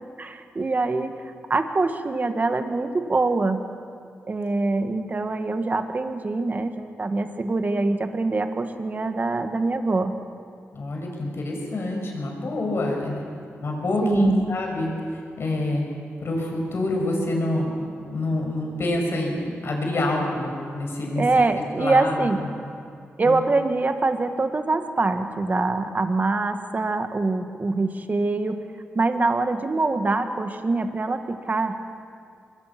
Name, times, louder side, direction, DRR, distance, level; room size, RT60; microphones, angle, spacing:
voice 1, 0.2-3.6 4.3-10.1 14.0-14.4 21.2-22.5 23.2-28.6 29.0-31.8, right 3 dB, 35° right, 7 dB, 1.6 m, -24 dB
voice 2, 10.7-13.2 13.6-15.8 16.2-17.7 18.1-21.2 21.8-22.2 23.2-23.3, left 1 dB, 60° left, 1 dB, 5.9 m, -26 dB
24.5 x 22.5 x 6.0 m, 2.4 s
wide cardioid pair, 95°, 5 cm